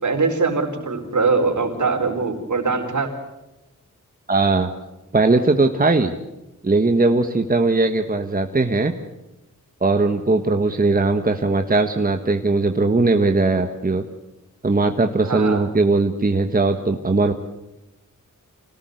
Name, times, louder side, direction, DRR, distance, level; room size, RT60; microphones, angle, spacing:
voice 1, 0.0-3.1 15.2-15.6, right 4 dB, 65° right, 4 dB, 4.4 m, -22 dB
voice 2, 4.3-4.7 5.1-6.1 6.6-8.9 9.8-14.0 14.6-17.3, right 3 dB, 25° right, 5 dB, 1.4 m, -19 dB
26.5 x 18.0 x 8.0 m, 0.98 s
wide cardioid pair, 90°, 32 cm